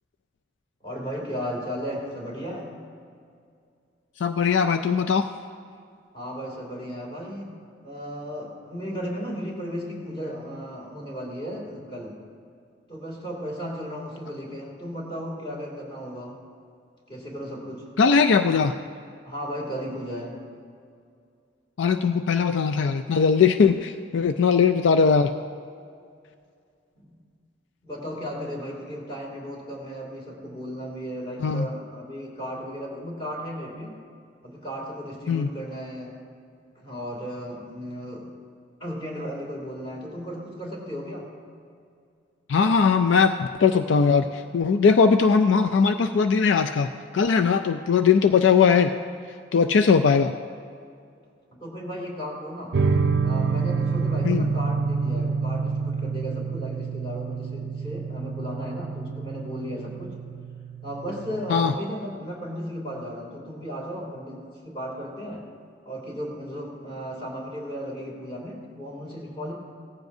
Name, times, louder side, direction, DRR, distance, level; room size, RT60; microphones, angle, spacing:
voice 1, 0.8-2.7 6.1-7.5 7.8-12.2 12.9-16.4 17.1-17.9 19.2-20.4 27.0-27.2 27.8-33.9 34.4-36.2 36.8-38.3 38.8-41.3 51.5-52.8 53.2-60.1 60.8-65.5 65.8-69.5, equal, 25° left, -2 dB, 2.6 m, -35 dB
voice 2, 4.2-5.3 18.0-18.7 21.8-25.3 31.4-31.7 35.3-35.5 42.5-48.9 49.5-50.3 54.2-54.5 61.5-61.7, left 5 dB, 75° left, 8 dB, 0.4 m, -20 dB
sound 1, 52.7-61.7, right 5 dB, 60° right, 0.5 m, -27 dB
17.0 x 14.5 x 2.7 m, 2.3 s
head